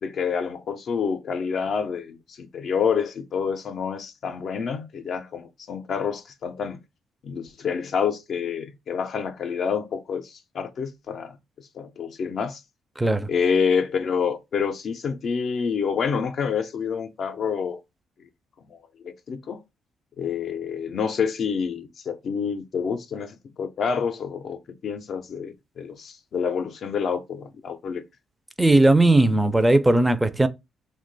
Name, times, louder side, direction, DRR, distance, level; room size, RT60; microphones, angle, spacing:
voice 1, 0.0-6.8 7.2-11.4 11.8-12.6 13.3-17.8 18.7-19.6 20.2-28.0, left 6 dB, 60° left, 0.4 m, -28 dB
voice 2, 13.0-13.3 28.6-30.5, right 2 dB, 10° right, 0.4 m, -18 dB
2.8 x 2.2 x 3.9 m
cardioid pair, 90°, 0 cm